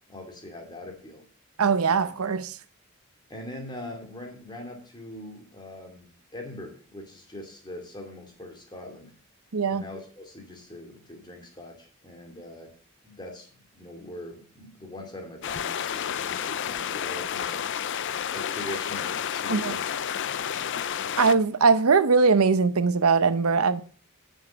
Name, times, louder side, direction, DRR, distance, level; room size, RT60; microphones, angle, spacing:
voice 1, 0.1-1.2 3.3-9.1 9.7-12.7 13.0-17.7 18.3-19.8 20.2-20.3, left 1 dB, 20° left, 2.6 m, -42 dB
voice 2, 1.6-2.6 9.5-9.8 19.5-19.8 21.2-23.8, right 4 dB, 85° right, 0.7 m, -21 dB
sound 1, 15.4-21.4, left 9 dB, 55° left, 0.5 m, -30 dB
9.2 x 7.2 x 6.2 m
head